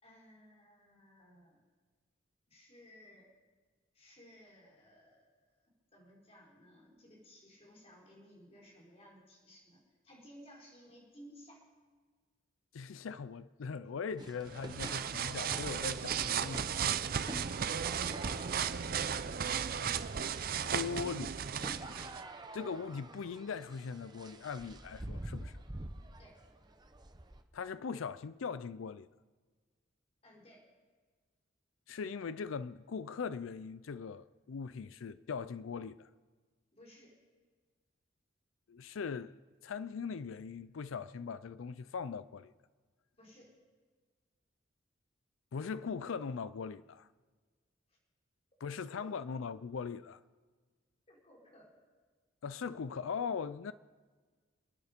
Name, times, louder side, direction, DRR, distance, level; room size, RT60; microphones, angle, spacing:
voice 1, 0.0-1.6 2.5-3.3 3.9-11.6 18.0-19.4 26.2-26.4 30.2-30.6 36.7-37.2 43.2-43.6 47.9-48.0 48.7-49.4 51.1-51.8, equal, 30° left, 4.3 m, -58 dB
voice 2, 12.7-17.1 20.6-21.4 22.5-25.6 27.5-29.1 31.9-36.1 38.7-42.5 45.5-47.1 48.6-50.2 52.4-53.7, left 5 dB, 90° left, 0.4 m, -40 dB
sound 1, 14.2-27.4, right 1 dB, 20° right, 0.9 m, -48 dB
sound 2, 14.5-22.2, right 7 dB, 50° right, 0.5 m, -35 dB
26.0 x 9.6 x 5.2 m
head